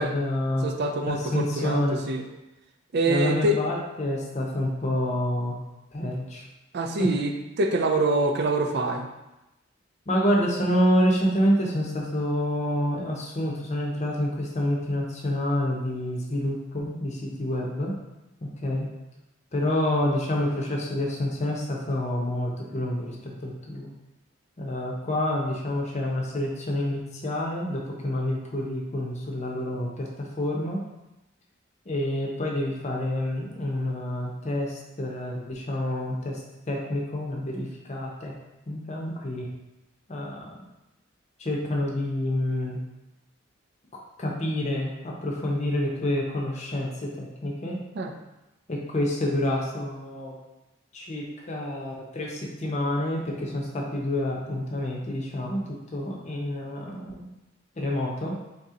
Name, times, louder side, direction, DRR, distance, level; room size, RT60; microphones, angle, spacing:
voice 1, 0.0-0.7 1.1-2.0 3.0-5.6 5.9-6.4 7.0-7.1 10.1-17.9 18.4-18.9 19.5-23.9 24.6-30.8 31.8-36.4 36.7-38.3 38.7-39.5 40.1-40.5 41.4-42.8 44.2-47.8 48.7-50.4 50.9-57.3 57.7-58.3, left 1 dB, 35° left, -1 dB, 0.7 m, -28 dB
voice 2, 0.6-2.2 2.9-3.6 6.7-7.3 7.6-9.1 48.0-48.1, right 2 dB, 55° right, 4 dB, 0.4 m, -25 dB
3.9 x 2.8 x 3.7 m, 0.98 s
head